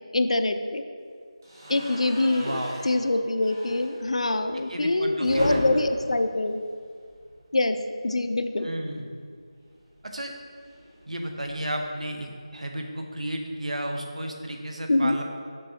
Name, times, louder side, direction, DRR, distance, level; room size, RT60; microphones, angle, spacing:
voice 1, 0.1-0.8 1.7-6.6 7.5-7.8 8.0-8.7 14.9-15.2, left 2 dB, 70° left, 8 dB, 0.4 m, -24 dB
sound 1, 1.4-7.5 7.8-8.0 8.2-8.3 9.6-11.9, equal, 35° right, 1.6 m, -37 dB
voice 2, 2.4-2.8 4.5-5.6 8.6-9.1 10.0-10.3 11.1-15.2, right 1 dB, 85° right, 3 dB, 0.8 m, -33 dB
7.0 x 5.3 x 2.8 m, 2.1 s
figure-of-eight pair, 175°, 3 cm